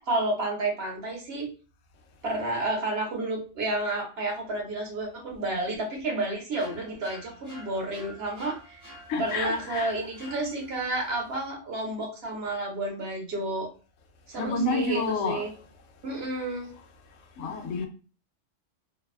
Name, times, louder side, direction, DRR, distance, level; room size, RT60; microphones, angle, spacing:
voice 1, 0.1-1.5 2.2-8.8 9.2-13.7 14.3-15.5 16.0-16.7, right 2 dB, 55° right, 1.1 m, -31 dB
sound 1, 6.6-10.9, equal, 15° right, 0.9 m, -48 dB
voice 2, 9.1-9.9 14.4-15.4 17.4-17.9, left 3 dB, 75° left, 1.0 m, -29 dB
2.6 x 2.3 x 2.3 m
omnidirectional pair, 1.3 m